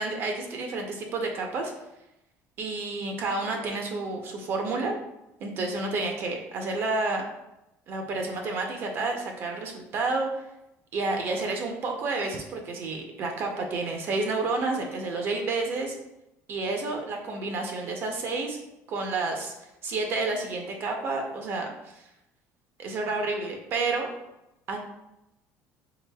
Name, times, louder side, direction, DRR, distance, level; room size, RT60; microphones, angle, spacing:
voice 1, 0.0-1.7 2.6-4.9 5.4-7.3 7.9-10.4 10.9-16.0 16.5-18.6 18.9-19.5 19.8-21.7 21.9-22.0 22.8-24.1 24.7-24.8, right 3 dB, 40° right, 3 dB, 0.6 m, -30 dB
4.8 x 3.3 x 2.2 m, 0.89 s
cardioid pair, 165°, 6 cm